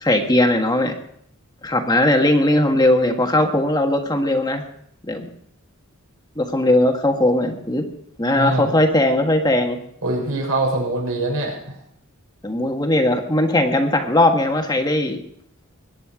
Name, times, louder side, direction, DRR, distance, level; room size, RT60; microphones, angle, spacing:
voice 1, 0.0-0.9 1.6-4.6 5.0-5.3 6.4-7.8 8.2-9.8 12.4-15.2, left 1 dB, 20° left, 3 dB, 1.5 m, -18 dB
voice 2, 8.3-8.7 10.0-11.8, right 2 dB, 75° right, -1 dB, 6.7 m, -23 dB
22.0 x 10.0 x 4.9 m, 0.68 s
head